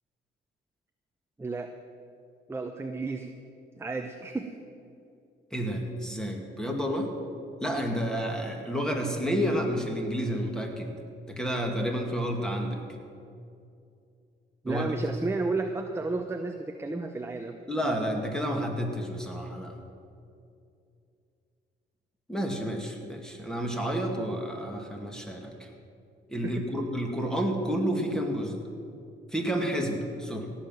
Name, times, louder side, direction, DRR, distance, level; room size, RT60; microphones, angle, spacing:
voice 1, 1.4-1.7 2.5-3.3 3.8-4.5 14.6-17.6 26.4-26.6, right 3 dB, 10° right, 5 dB, 0.8 m, -32 dB
voice 2, 5.5-7.1 7.6-10.9 11.3-12.8 14.7-15.0 17.7-19.7 22.3-25.7 26.3-28.6 29.3-30.5, equal, 5° left, 2 dB, 2.2 m, -30 dB
17.0 x 5.8 x 9.1 m, 2.5 s
cardioid pair, 90°, 20 cm